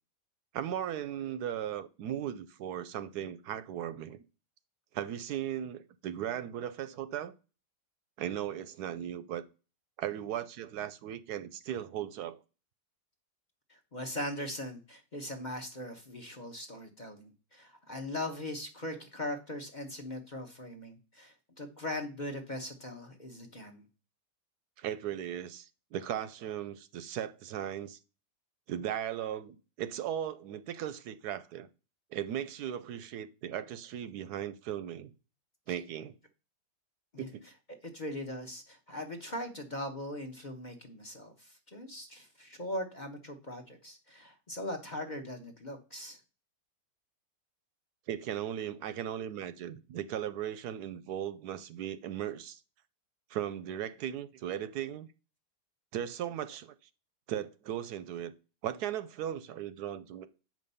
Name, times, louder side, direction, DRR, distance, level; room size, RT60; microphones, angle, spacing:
voice 1, 0.5-4.2 4.9-7.3 8.2-9.4 10.0-12.4 24.8-28.0 28.7-31.7 32.1-35.1 35.7-36.1 37.2-37.4 48.1-52.6 53.3-55.1 55.9-56.7 57.3-58.3 58.6-60.3, right 10 dB, 75° right, 1.1 m, -37 dB
voice 2, 13.7-23.8 37.1-37.3 37.7-46.2, left 1 dB, 30° left, 1.0 m, -40 dB
7.6 x 5.3 x 5.4 m
omnidirectional pair, 1.8 m